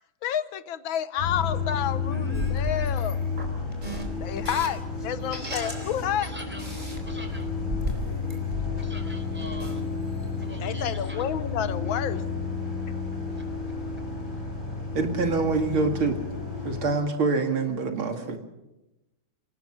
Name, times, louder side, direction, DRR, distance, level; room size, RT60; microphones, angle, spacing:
voice 1, 0.2-3.2 4.2-6.3 10.6-12.2 12.8-12.9, left 9 dB, 75° left, 1.7 m, -30 dB
sound 1, 1.2-16.9, left 5 dB, 40° left, 6.8 m, -31 dB
voice 2, 2.1-3.2 5.4-5.7 6.2-6.7 7.0-7.5 8.8-9.8 10.4-11.2 13.3-13.4, equal, 5° right, 4.4 m, -44 dB
sound 2, 2.3-4.7 5.2-6.0 6.2-9.1 9.4-9.8 10.2-10.3, equal, 20° right, 4.0 m, -35 dB
voice 3, 14.9-16.2 16.6-18.4, right 4 dB, 85° right, 3.2 m, -25 dB
26.0 x 19.0 x 6.3 m
omnidirectional pair, 2.2 m